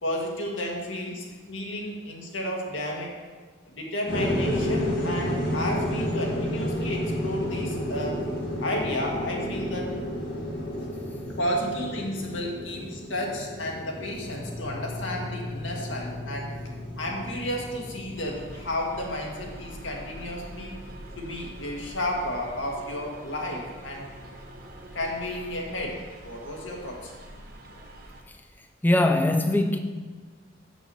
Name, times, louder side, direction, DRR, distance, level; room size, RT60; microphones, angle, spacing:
voice 1, 0.0-3.2 3.7-8.2 8.6-10.0 11.4-16.5 17.0-20.7 21.2-24.1 24.9-27.2, left 1 dB, 90° left, 1.7 m, -32 dB
sound 1, 4.1-18.6, equal, 60° left, 2.4 m, -31 dB
sound 2, 14.1-26.0, left 1 dB, 80° right, 1.4 m, -42 dB
sound 3, 18.1-28.2, right 1 dB, 50° right, 1.0 m, -46 dB
voice 2, 28.8-29.8, left 1 dB, 10° left, 0.3 m, -22 dB
6.9 x 6.1 x 6.9 m
head